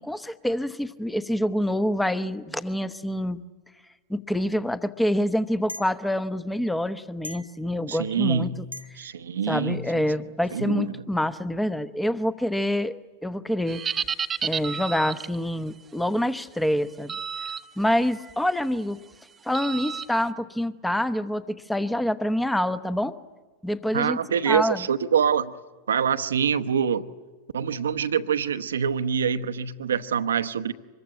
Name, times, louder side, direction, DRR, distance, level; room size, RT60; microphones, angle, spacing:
voice 1, 0.0-3.4 4.1-8.5 9.5-13.8 14.4-17.1 17.8-19.0 19.4-23.1 23.6-24.2 24.5-24.8, left 1 dB, 5° left, 14 dB, 1.0 m, -26 dB
sound 1, 5.7-5.9 7.2-7.6 8.7-9.0, left 1 dB, 85° left, 0.9 m, -38 dB
voice 2, 7.9-8.6 9.0-9.8 10.5-10.9 23.9-25.5 25.9-27.0 27.5-30.7, right 7 dB, 65° right, 11 dB, 0.9 m, -25 dB
sound 2, 13.7-15.4 17.1-17.6 18.1-18.3 19.5-20.1, right 7 dB, 20° right, 1.0 m, -30 dB
25.0 x 22.0 x 8.9 m, 1.4 s
figure-of-eight pair, 90°, 0 cm